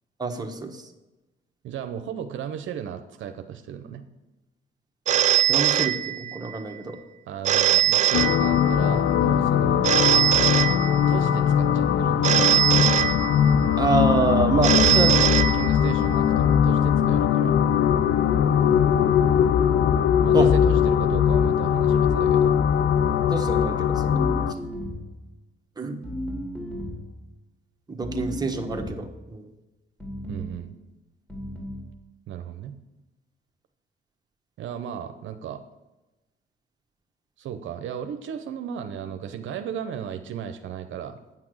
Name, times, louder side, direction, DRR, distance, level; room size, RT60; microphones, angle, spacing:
voice 1, 0.2-0.8 5.5-7.0 13.8-15.1 20.3-20.5 23.3-24.3 25.8-26.1 27.9-29.5, right 3 dB, 20° right, 3 dB, 1.3 m, -26 dB
voice 2, 1.6-4.0 7.3-9.9 11.1-12.7 14.5-17.6 20.2-22.6 30.3-30.7 32.3-32.7 34.6-35.6 37.4-41.2, right 8 dB, 75° right, 7 dB, 0.7 m, -35 dB
Telephone, 5.1-6.6 7.4-8.9 9.8-11.3 12.2-13.7 14.6-16.1, right 10 dB, 40° right, 0.4 m, -22 dB
sound 1, 8.1-24.5, left 8 dB, 75° left, 0.5 m, -20 dB
sound 2, 24.0-25.2 26.0-27.1 28.0-29.1 30.0-30.6 31.3-31.9, equal, 10° left, 2.7 m, -34 dB
9.2 x 5.9 x 6.3 m, 1.1 s
cardioid pair, 90°, 20 cm